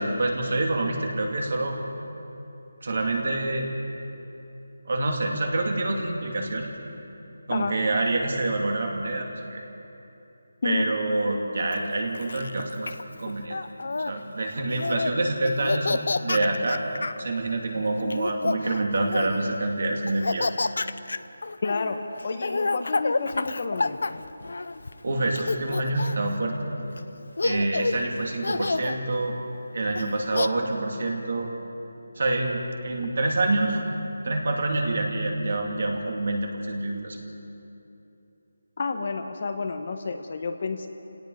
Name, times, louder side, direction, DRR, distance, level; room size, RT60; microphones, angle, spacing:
voice 1, 0.0-1.8 2.8-3.7 4.8-6.7 7.5-9.6 10.6-12.9 13.2-13.6 14.0-16.8 17.2-20.5 25.0-26.5 27.4-29.3 29.7-31.5 32.2-33.8 34.2-37.2, right 2 dB, 50° right, 1 dB, 3.0 m, -27 dB
Laughter, 11.7-14.1 14.7-15.1 15.4-17.2 18.0-19.5 20.1-24.9 25.4-26.3 27.0-27.1 27.4-28.0 28.4-29.0 30.0-30.5, left 3 dB, 60° left, 0.7 m, -29 dB
voice 2, 21.6-22.0 22.2-24.0 38.8-40.9, left 4 dB, 35° left, 6 dB, 1.1 m, -30 dB
29.0 x 18.0 x 5.0 m, 2.9 s
figure-of-eight pair, 175°, 0 cm